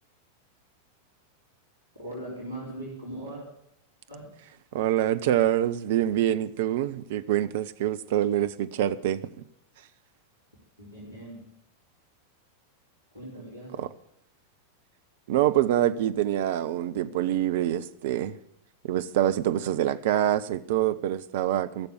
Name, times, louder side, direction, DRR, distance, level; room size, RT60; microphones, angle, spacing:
voice 1, 2.0-3.4 4.1-4.4 10.8-11.5 13.1-13.9, right 1 dB, 80° right, 4.2 m, -40 dB
voice 2, 4.7-9.2 13.8-13.9 15.3-18.4 18.8-21.9, right 12 dB, 55° right, 0.7 m, -25 dB
15.0 x 6.9 x 9.6 m
figure-of-eight pair, 90°, 0 cm